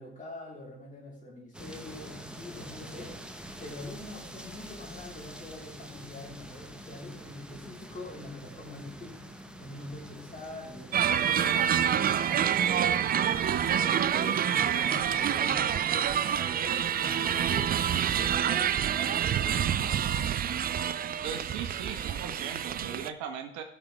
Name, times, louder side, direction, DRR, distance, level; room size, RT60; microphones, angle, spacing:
voice 1, 0.0-3.2 3.6-9.2 9.6-12.8 13.2-17.7 18.1-20.3, left 2 dB, 25° left, -3 dB, 4.4 m, -44 dB
sound 1, 1.5-13.1, right 1 dB, 5° right, 1.3 m, -46 dB
sound 2, 10.9-23.1, right 9 dB, 25° right, 0.5 m, -27 dB
voice 2, 21.2-23.6, right 8 dB, 60° right, 6 dB, 1.5 m, -38 dB
15.5 x 6.6 x 3.6 m, 0.68 s
hypercardioid pair, 80°, 33 cm